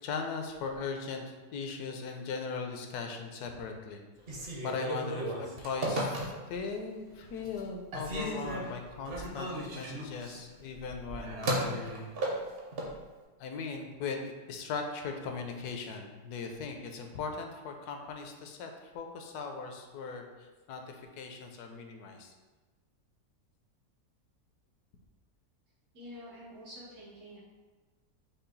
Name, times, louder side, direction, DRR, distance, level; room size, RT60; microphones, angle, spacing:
voice 1, 0.0-4.0 4.6-11.4 11.8-12.0 13.4-22.3, left 4 dB, 80° left, 4 dB, 1.1 m, -39 dB
Telephone, 4.2-6.7 7.1-7.6 7.9-13.0, right 1 dB, 50° right, 0.8 m, -35 dB
voice 2, 25.9-27.4, equal, 85° right, -14 dB, 2.3 m, -47 dB
5.5 x 2.3 x 3.8 m, 1.2 s
omnidirectional pair, 1.7 m